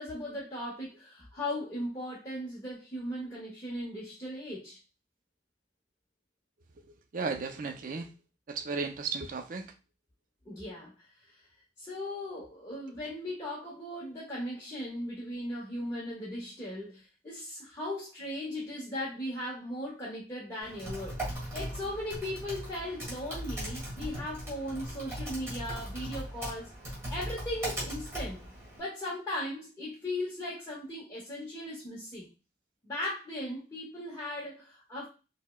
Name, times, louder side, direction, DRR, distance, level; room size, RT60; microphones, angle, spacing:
voice 1, 0.0-4.8 10.5-11.4 11.8-26.7 27.1-32.3 32.8-35.1, left 1 dB, 20° left, 0.8 m, -38 dB
voice 2, 7.1-8.1 8.5-9.7, right 4 dB, 45° right, 0.4 m, -34 dB
Typing, 20.6-28.8, right 1 dB, 15° right, 1.4 m, -39 dB
4.5 x 2.1 x 2.2 m
head